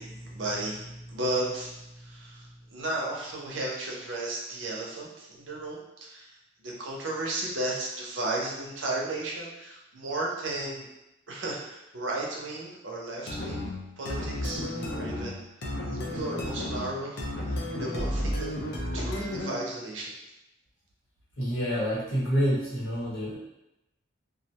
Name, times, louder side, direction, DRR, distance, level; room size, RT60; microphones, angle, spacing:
voice 1, 0.0-10.9 11.3-13.6 14.0-15.4 15.9-20.1, right 2 dB, 70° right, -2 dB, 0.6 m, -34 dB
sound 1, 13.3-19.7, left 1 dB, 55° left, 0.5 m, -33 dB
voice 2, 21.4-23.4, equal, 80° left, -8 dB, 1.2 m, -27 dB
2.4 x 2.1 x 2.8 m, 0.91 s
head